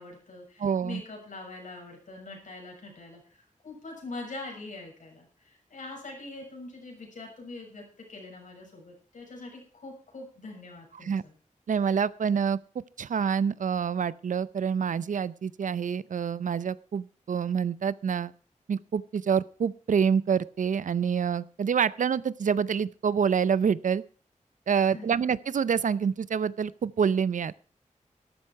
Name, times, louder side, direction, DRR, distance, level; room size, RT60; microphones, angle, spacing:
voice 1, 0.0-11.3 24.7-25.2, left 2 dB, 75° left, 1 dB, 6.8 m, -43 dB
voice 2, 0.6-1.0 11.0-11.2 11.7-12.6 13.0-18.3 18.7-24.0 24.7-27.5, right 7 dB, 75° right, 19 dB, 0.6 m, -27 dB
13.0 x 12.5 x 4.7 m, 0.41 s
wide cardioid pair, 120°, 13 cm